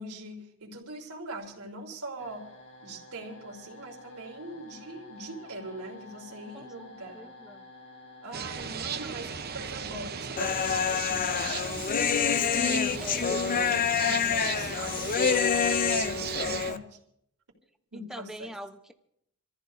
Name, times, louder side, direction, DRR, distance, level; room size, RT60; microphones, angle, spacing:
voice 1, 0.0-2.5 2.8-7.3 8.2-11.9 12.9-16.8 17.9-18.5, right 2 dB, 85° right, 0 dB, 3.4 m, -42 dB
sound 1, 2.2-11.1, left 2 dB, 60° left, 7.5 m, -51 dB
voice 2, 6.5-7.7 13.0-13.5 17.9-18.9, equal, ahead, 6 dB, 0.9 m, -43 dB
sound 2, 8.3-16.7, right 6 dB, 45° right, 0.8 m, -36 dB
Human voice, 10.4-16.8, left 7 dB, 40° left, 0.5 m, -27 dB
27.5 x 14.5 x 2.7 m, 0.75 s
head